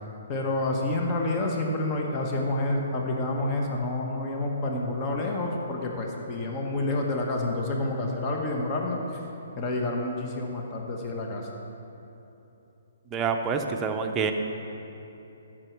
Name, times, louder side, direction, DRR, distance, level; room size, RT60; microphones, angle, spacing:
voice 1, 0.3-9.0 9.6-11.5, left 2 dB, 25° left, 0 dB, 1.1 m, -28 dB
voice 2, 13.1-14.3, right 5 dB, 15° right, 3 dB, 0.7 m, -27 dB
14.5 x 6.1 x 4.6 m, 2.9 s
hypercardioid pair, 145°, 0 cm